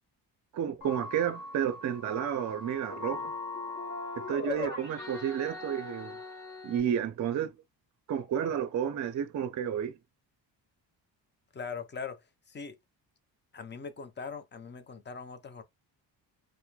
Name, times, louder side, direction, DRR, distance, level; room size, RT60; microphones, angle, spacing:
voice 1, 0.5-3.3 4.3-6.2 6.6-7.5 8.1-9.9, right 9 dB, 40° right, 0.5 m, -31 dB
sound 1, 0.8-6.8, left 3 dB, 40° left, 1.0 m, -39 dB
voice 2, 11.5-12.8 13.5-15.6, left 5 dB, 25° left, 0.5 m, -41 dB
2.9 x 2.1 x 2.3 m
cardioid pair, 95°, 45 cm